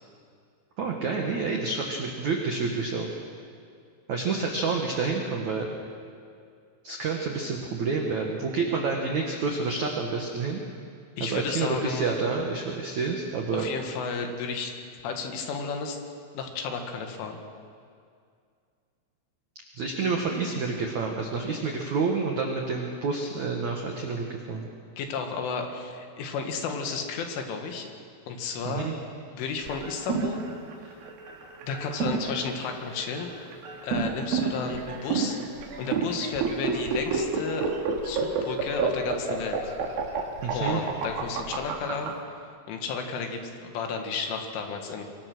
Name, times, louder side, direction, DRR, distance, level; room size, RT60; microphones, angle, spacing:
voice 1, 0.8-3.2 4.1-5.7 6.8-10.6 11.2-13.7 19.7-24.7 28.7-28.9 40.4-40.8, right 4 dB, 85° right, 1 dB, 1.6 m, -28 dB
voice 2, 11.2-12.1 13.5-14.8 15.0-16.0 16.3-17.4 25.0-27.9 28.3-28.9 29.3-30.5 31.6-33.3 33.8-35.4 35.8-37.7 38.0-39.7 40.5-42.1 42.7-45.0, left 5 dB, 70° left, 4 dB, 4.2 m, -33 dB
sound 1, 29.6-42.1, right 5 dB, 55° right, 3.2 m, -29 dB
25.0 x 22.0 x 6.2 m, 2.3 s
omnidirectional pair, 6.0 m